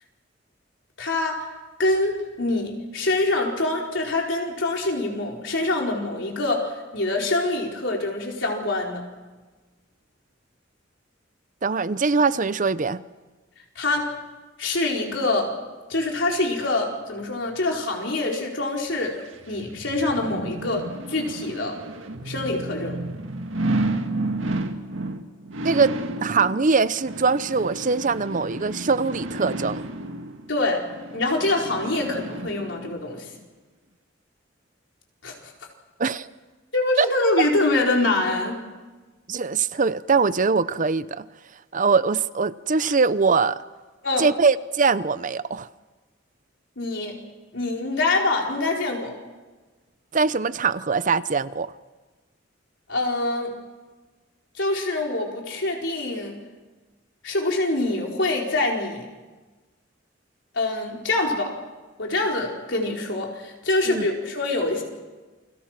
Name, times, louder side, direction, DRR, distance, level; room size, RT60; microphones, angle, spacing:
voice 1, 1.0-1.5 1.8-9.1 13.7-14.1 14.6-15.5 15.9-19.1 19.5-21.7 22.2-23.0 30.5-30.8 31.1-33.3 35.2-35.3 36.7-38.6 44.0-44.3 46.8-47.1 47.5-49.1 52.9-53.5 54.6-56.4 57.2-59.0 60.5-61.5 62.0-64.8, left 2 dB, 65° left, 4.8 m, -25 dB
voice 2, 11.6-13.0 25.6-26.0 26.2-29.9 36.0-36.3 37.0-37.1 39.3-41.3 41.7-43.6 44.2-45.7 50.1-51.7 63.9-64.1, right 4 dB, 40° right, 0.7 m, -22 dB
sound 1, 19.1-33.0 33.4-33.5, right 2 dB, 90° right, 1.9 m, -32 dB
29.0 x 22.5 x 6.0 m
head